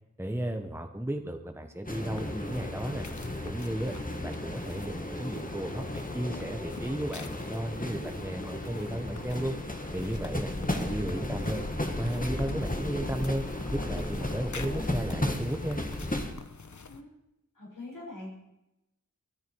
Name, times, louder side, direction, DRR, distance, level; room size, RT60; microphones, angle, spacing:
voice 1, 0.2-3.1 3.4-3.9 4.2-9.5 9.9-11.6 12.0-13.4 13.7-15.8, right 1 dB, 10° right, 5 dB, 1.1 m, -34 dB
sound 1, 1.8-16.3, left 1 dB, 25° left, 1.8 m, -34 dB
sound 2, 2.0-17.0, left 4 dB, 65° left, 1.1 m, -47 dB
voice 2, 17.5-18.3, left 2 dB, 80° left, -3 dB, 5.9 m, -43 dB
23.5 x 10.5 x 4.7 m, 0.91 s
wide cardioid pair, 60°, 32 cm